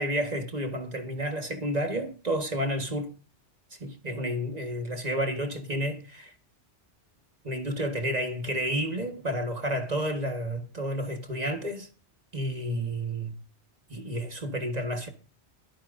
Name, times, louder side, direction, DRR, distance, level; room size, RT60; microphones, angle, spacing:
voice 1, 0.0-3.1 3.8-6.3 7.4-11.9 12.3-13.4 13.9-15.1, equal, 35° right, 1.7 m, -31 dB
24.0 x 8.7 x 2.6 m
omnidirectional pair, 1.2 m